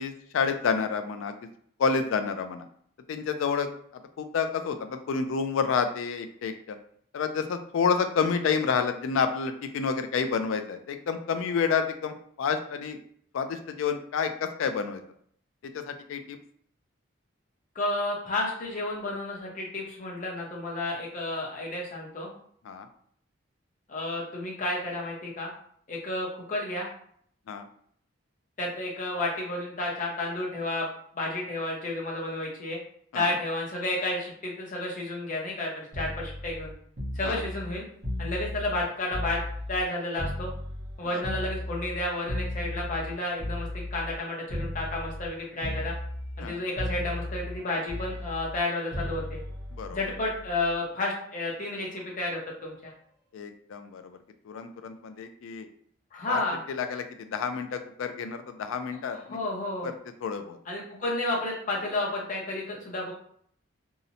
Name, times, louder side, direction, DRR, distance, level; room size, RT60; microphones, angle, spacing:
voice 1, 0.0-1.3 1.8-2.6 3.1-3.7 4.2-6.8 7.1-13.0 13.3-15.0 15.6-16.4 22.6-22.9 27.5-27.7 33.1-33.4 37.2-37.4 41.1-41.2 46.4-46.6 49.8-50.0 53.3-54.2 54.5-55.7 56.3-56.4 56.7-59.4 59.8-59.9 60.2-60.6, left 5 dB, 75° left, 8 dB, 0.3 m, -29 dB
voice 2, 17.7-22.3 23.9-25.5 25.9-26.9 28.6-30.9 31.1-32.8 33.1-36.7 37.2-37.9 38.2-39.4 39.7-40.5 41.0-45.9 46.4-49.4 49.9-52.9 56.1-56.6 59.1-59.9 60.7-63.1, left 2 dB, 40° left, -2 dB, 0.6 m, -31 dB
sound 1, 35.9-39.9 40.2-44.2 44.5-45.3 45.6-46.5 46.8-50.8 52.0-52.2, left 1 dB, 65° right, 0.8 m, -35 dB
2.7 x 2.0 x 2.6 m, 0.62 s
head